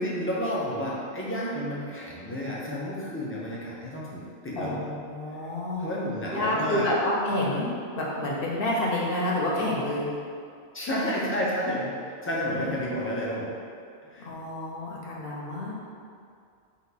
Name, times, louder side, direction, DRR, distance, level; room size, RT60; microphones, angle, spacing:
voice 1, 0.0-4.8 5.8-6.9 10.7-11.9 12.2-13.5 14.1-14.3, equal, 20° left, -6 dB, 0.4 m, -30 dB
voice 2, 4.6-10.1 12.4-12.7 14.2-15.7, left 1 dB, 55° left, -5 dB, 0.9 m, -29 dB
4.3 x 2.5 x 4.0 m, 2.3 s
omnidirectional pair, 1.2 m